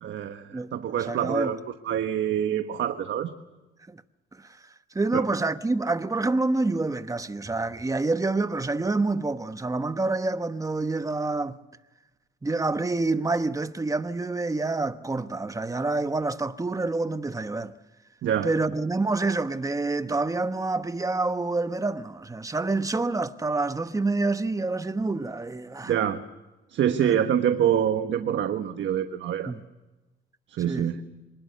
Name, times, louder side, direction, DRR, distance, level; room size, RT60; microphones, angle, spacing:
voice 1, 0.0-1.6 1.8-3.3 5.1-5.3 18.2-18.5 25.9-26.2 26.7-29.5 30.5-31.0, right 9 dB, 70° right, 1.3 m, -26 dB
voice 2, 0.5-1.5 3.9-4.0 4.4-4.6 4.9-11.6 12.4-17.7 18.4-25.9 27.0-27.2 29.5-29.6 30.7-30.9, right 3 dB, 15° right, 1.2 m, -27 dB
25.0 x 20.0 x 6.8 m
cardioid pair, 90°, 20 cm